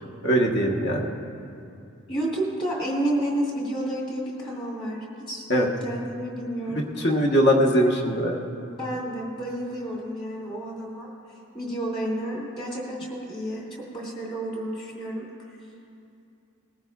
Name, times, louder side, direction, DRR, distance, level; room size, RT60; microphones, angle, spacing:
voice 1, 0.2-1.1 5.5-5.7 7.0-8.4, equal, 50° left, 0 dB, 1.2 m, -21 dB
voice 2, 2.1-7.1 8.6-11.1 11.5-15.3, right 1 dB, 25° left, -3 dB, 2.9 m, -31 dB
20.0 x 14.5 x 2.4 m, 2.6 s
head